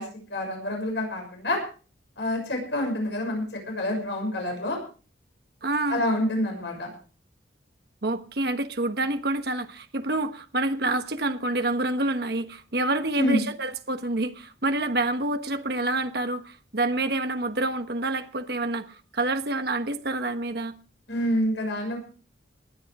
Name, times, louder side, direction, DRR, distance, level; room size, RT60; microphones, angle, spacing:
voice 1, 0.0-1.6 2.2-4.8 5.9-6.9 13.2-13.5 21.1-22.0, left 1 dB, 70° left, 6.3 m, -27 dB
voice 2, 5.6-6.0 8.0-20.7, right 2 dB, 55° right, 1.2 m, -27 dB
19.5 x 10.5 x 4.8 m
head